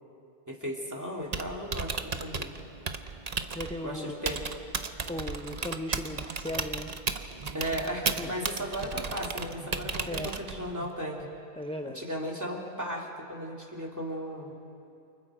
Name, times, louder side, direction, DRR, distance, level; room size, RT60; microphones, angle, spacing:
voice 1, 0.5-2.5 3.8-4.4 7.5-11.2 11.9-14.5, equal, 15° right, -1 dB, 2.9 m, -35 dB
Typing, 1.2-10.8, right 4 dB, 40° right, 0.9 m, -35 dB
voice 2, 3.5-4.1 5.1-6.9 8.2-8.3 10.1-10.3 11.6-12.0, left 1 dB, 5° left, 4 dB, 0.5 m, -36 dB
sound 1, 5.5-8.1 8.4-11.3, right 5 dB, 65° right, 1.9 m, -47 dB
28.5 x 28.5 x 5.0 m, 2.7 s
omnidirectional pair, 1.2 m